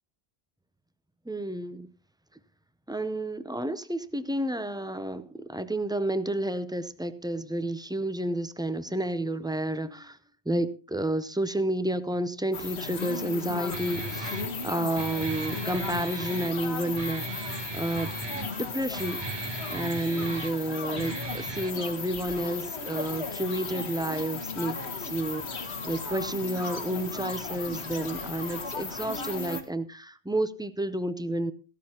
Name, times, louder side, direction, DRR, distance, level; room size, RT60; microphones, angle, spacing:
voice 1, 1.3-1.9 2.9-10.2 10.5-31.5, right 1 dB, 5° right, 0.3 m, -31 dB
sound 1, 12.5-29.6, left 4 dB, 90° left, 1.6 m, -36 dB
Guitar, 13.7-21.7, right 3 dB, 30° right, 0.7 m, -38 dB
15.5 x 12.5 x 2.9 m
omnidirectional pair, 1.1 m